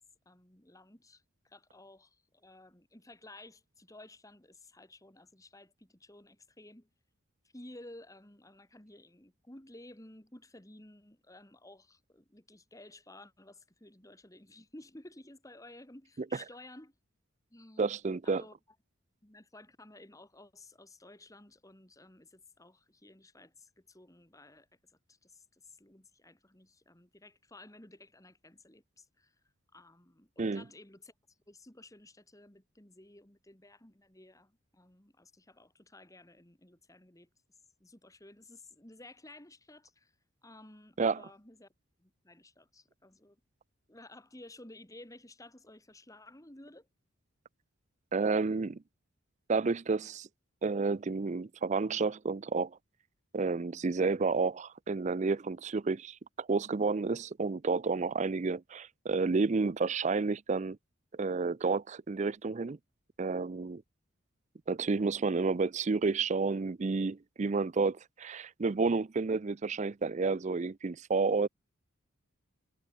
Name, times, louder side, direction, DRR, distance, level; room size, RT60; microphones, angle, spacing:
voice 1, 0.3-6.9 7.5-16.9 17.5-18.0 18.2-18.6 19.2-24.7 25.1-29.3 29.7-31.1 31.5-37.3 37.8-40.1 40.4-41.7 42.0-43.4 43.9-46.9, left 1 dB, 15° left, 2.2 m, -54 dB
voice 2, 17.8-18.4 30.4-30.6 41.0-41.2 48.1-48.8 49.5-50.3 50.6-52.8 53.3-60.8 61.2-62.8 63.2-63.8 64.7-71.5, right 4 dB, 35° right, 0.4 m, -30 dB
head